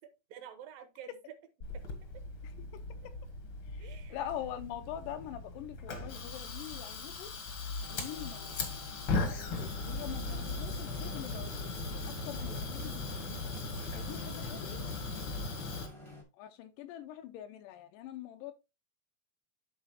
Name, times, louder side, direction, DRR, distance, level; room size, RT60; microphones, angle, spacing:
voice 1, 0.0-1.4 1.7-1.9 2.1-2.2 3.8-4.3 8.1-8.4 12.3-12.9 14.0-14.3 15.4-15.5, right 9 dB, 80° right, 2.6 m, -52 dB
Fire, 1.6-15.9, left 3 dB, 60° left, 1.3 m, -38 dB
voice 2, 3.7-7.3 7.9-8.6 8.9-11.7 12.1-12.9 13.2-13.4 13.9-14.9 16.4-18.5, left 11 dB, 80° left, 2.1 m, -44 dB
sound 1, 7.8-16.2, left 2 dB, 30° left, 0.5 m, -52 dB
12.0 x 4.0 x 2.7 m
omnidirectional pair, 4.1 m